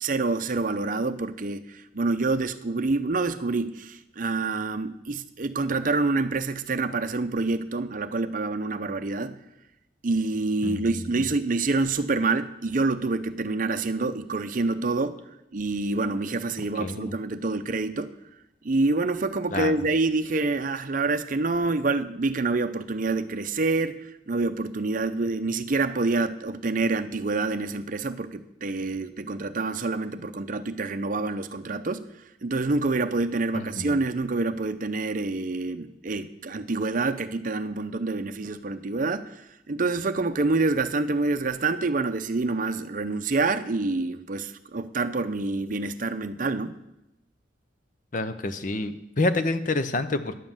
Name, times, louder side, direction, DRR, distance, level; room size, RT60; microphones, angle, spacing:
voice 1, 0.0-9.4 10.0-15.2 15.5-18.1 18.6-32.0 32.4-39.3 39.7-46.8, right 3 dB, 45° right, 0.6 m, -27 dB
voice 2, 10.6-11.2 16.8-17.1 19.5-19.8 33.5-34.0 48.1-50.4, left 2 dB, 45° left, 0.7 m, -28 dB
11.0 x 7.6 x 7.3 m
head